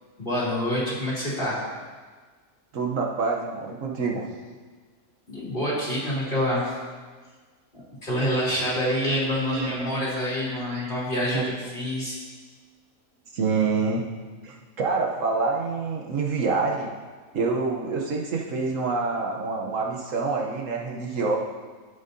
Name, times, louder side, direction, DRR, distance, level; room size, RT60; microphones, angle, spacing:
voice 1, 0.2-1.6 5.3-6.8 8.0-12.2, equal, 35° left, -7 dB, 3.0 m, -27 dB
voice 2, 2.7-4.3 9.4-10.1 10.5-10.9 11.3-11.7 13.3-14.1 14.4-16.9 17.3-21.4, right 4 dB, 65° right, -1 dB, 1.2 m, -27 dB
14.0 x 7.2 x 2.7 m, 1.4 s
omnidirectional pair, 1.5 m